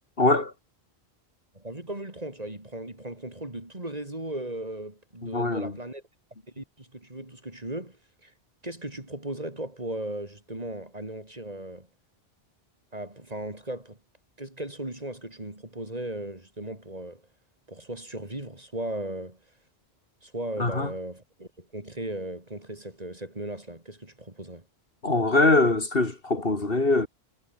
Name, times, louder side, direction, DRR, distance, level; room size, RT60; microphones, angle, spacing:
voice 1, 0.2-0.5 5.2-5.7 20.6-20.9 25.0-27.1, left 2 dB, 60° left, 3.1 m, -23 dB
voice 2, 1.5-6.0 6.6-8.3 8.6-11.9 12.9-14.0 14.4-17.2 17.7-19.4 20.2-24.7, right 1 dB, 35° right, 3.9 m, -37 dB
omnidirectional pair, 1.1 m